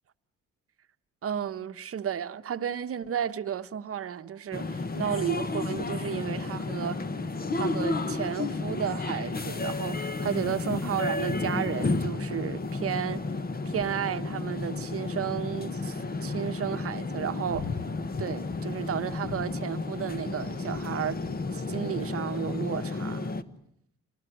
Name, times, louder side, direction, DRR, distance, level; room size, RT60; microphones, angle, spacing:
voice 1, 1.2-7.0 7.6-13.2 13.6-17.7 18.2-21.2 21.5-23.3, right 9 dB, 50° right, 1.0 m, -33 dB
sound 1, 4.5-23.4, left 3 dB, 30° left, 1.3 m, -32 dB
28.0 x 19.5 x 9.1 m
cardioid pair, 90°, 30 cm